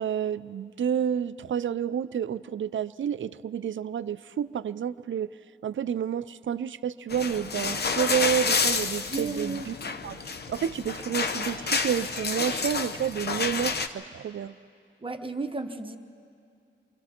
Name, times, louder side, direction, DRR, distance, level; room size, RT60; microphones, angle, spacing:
voice 1, 0.0-5.3 5.6-9.7 10.0-14.6, right 8 dB, 75° right, 15 dB, 0.4 m, -30 dB
sound 1, 7.1-13.9, left 4 dB, 55° left, 0.8 m, -29 dB
voice 2, 9.1-9.7 15.0-16.0, right 3 dB, 25° right, 6 dB, 0.9 m, -33 dB
28.0 x 23.5 x 4.4 m, 2.4 s
wide cardioid pair, 135°, 20 cm